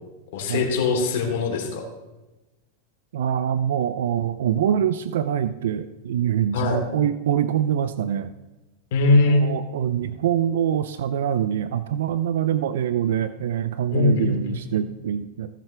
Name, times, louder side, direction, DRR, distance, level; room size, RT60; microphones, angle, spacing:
voice 1, 0.3-1.9 6.5-6.8 8.9-9.5 13.9-14.6, left 3 dB, 70° left, 1 dB, 3.2 m, -21 dB
voice 2, 3.1-8.3 9.3-15.5, right 9 dB, 80° right, 12 dB, 0.5 m, -24 dB
17.5 x 7.4 x 3.4 m, 1.1 s
hypercardioid pair, 115°, 0 cm